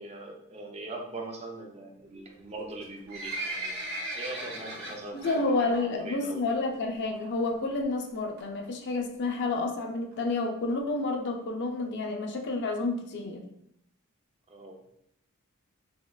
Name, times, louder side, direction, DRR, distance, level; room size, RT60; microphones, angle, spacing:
voice 1, 0.0-3.9 4.1-5.3 5.6-6.6 14.5-14.8, right 2 dB, 30° right, 2 dB, 0.4 m, -41 dB
Livestock farm animals working animals, 2.7-5.4 5.7-6.0 6.3-6.4 7.1-7.2 7.5-7.6 7.7-7.8 8.4-8.6 9.2-9.3 9.5-9.6 9.8-9.9 10.1-10.2 10.7-10.8 11.3-11.4 11.8-11.9, right 1 dB, 50° right, 1.1 m, -36 dB
voice 2, 5.1-13.4, left 3 dB, 50° left, 4 dB, 0.4 m, -30 dB
3.5 x 3.0 x 2.2 m, 0.77 s
head